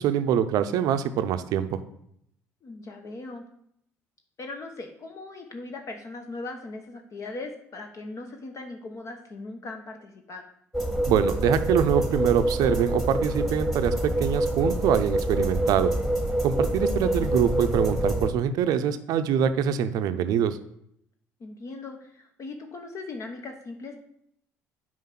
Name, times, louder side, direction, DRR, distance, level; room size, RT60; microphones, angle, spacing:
voice 1, 0.0-1.8 11.1-15.9 16.4-20.6, right 9 dB, 65° right, 11 dB, 0.5 m, -24 dB
voice 2, 2.6-3.4 4.4-10.5 17.0-17.3 21.4-24.0, left 3 dB, 50° left, 4 dB, 0.9 m, -39 dB
sound 1, 10.7-18.3, right 1 dB, ahead, 1.4 m, -26 dB
5.8 x 4.6 x 5.8 m, 0.72 s
hypercardioid pair, 60°, 7 cm